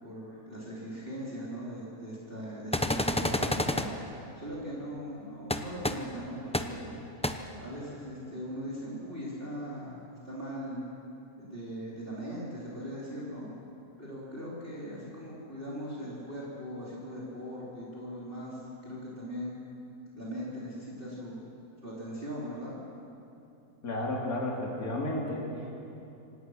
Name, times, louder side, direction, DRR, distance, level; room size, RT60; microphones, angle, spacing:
voice 1, 0.0-3.9 4.4-7.0 7.6-10.8 11.4-13.5 14.0-19.5 20.1-21.5 21.8-22.7, equal, 35° right, -7 dB, 3.8 m, -40 dB
sound 1, 2.7-3.9 5.5-5.6 5.8-5.9 6.5-6.6 7.2-7.3, left 1 dB, 10° left, 0.4 m, -28 dB
voice 2, 23.8-25.7, left 1 dB, 65° left, -2 dB, 3.3 m, -32 dB
25.5 x 18.0 x 6.3 m, 2.8 s
omnidirectional pair, 1.6 m